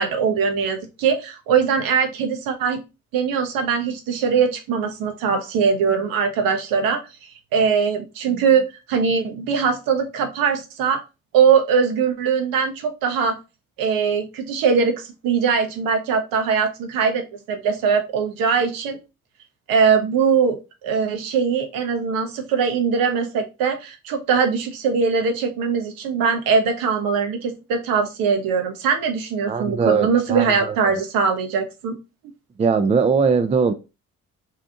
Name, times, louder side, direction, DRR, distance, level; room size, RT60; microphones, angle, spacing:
voice 1, 0.0-2.8 3.1-7.0 7.5-11.0 11.3-13.3 13.8-19.0 19.7-20.6 20.8-32.0, right 6 dB, 70° right, 5 dB, 0.8 m, -21 dB
voice 2, 29.5-31.0 32.6-33.7, right 5 dB, 20° right, 10 dB, 0.4 m, -20 dB
2.8 x 2.4 x 3.5 m, 0.28 s
hypercardioid pair, 45°, 36 cm